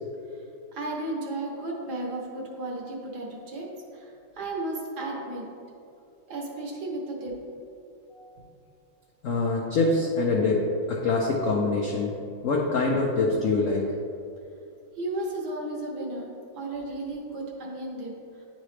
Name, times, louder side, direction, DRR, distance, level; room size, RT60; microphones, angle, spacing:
voice 1, 0.7-5.5 6.3-7.4 15.0-18.1, right 2 dB, 60° right, -1 dB, 1.4 m, -34 dB
voice 2, 9.2-12.1 12.4-13.8, left 3 dB, 90° left, -2 dB, 0.7 m, -25 dB
9.8 x 3.9 x 3.2 m, 2.5 s
omnidirectional pair, 2.2 m